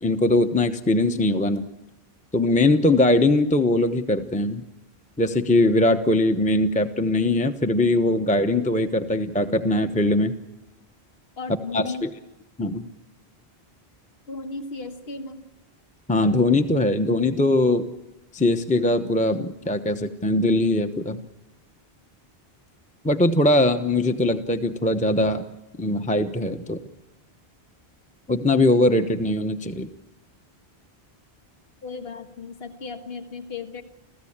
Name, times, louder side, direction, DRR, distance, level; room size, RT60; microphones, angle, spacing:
voice 1, 0.0-1.7 2.3-4.6 5.2-10.3 11.7-12.1 12.6-12.8 16.1-17.9 18.3-21.2 23.0-25.4 25.8-26.8 28.3-29.9, left 2 dB, 10° left, 7 dB, 0.9 m, -21 dB
voice 2, 11.4-12.0 14.3-15.4 31.8-33.8, left 4 dB, 70° left, 7 dB, 1.7 m, -35 dB
30.0 x 15.0 x 8.8 m, 1.0 s
omnidirectional pair, 1.1 m